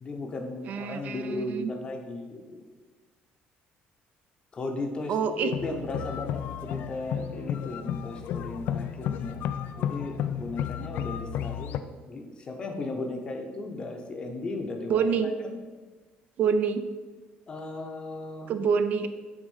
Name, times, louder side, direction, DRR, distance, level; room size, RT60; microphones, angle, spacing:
voice 1, 0.0-2.6 4.5-15.6 17.5-18.5, left 2 dB, 25° left, 3 dB, 0.8 m, -36 dB
voice 2, 0.6-1.7 5.1-5.5 14.9-15.3 16.4-16.8 18.5-19.1, right 6 dB, 45° right, 10 dB, 0.4 m, -26 dB
sound 1, 5.5-11.8, left 9 dB, 60° left, 0.3 m, -32 dB
6.1 x 3.7 x 5.5 m, 1.3 s
cardioid pair, 165°, 4 cm